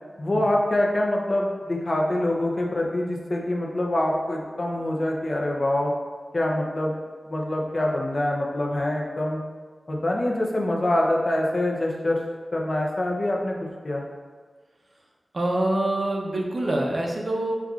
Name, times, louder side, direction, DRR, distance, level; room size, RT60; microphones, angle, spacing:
voice 1, 0.2-5.9 6.3-6.9 7.3-9.4 9.9-12.2 12.5-13.6 13.8-14.0, left 1 dB, 50° left, -1 dB, 0.5 m, -25 dB
voice 2, 15.3-17.6, right 1 dB, 60° right, -1 dB, 0.6 m, -25 dB
4.5 x 2.3 x 2.4 m, 1.5 s
wide cardioid pair, 60°, 0 cm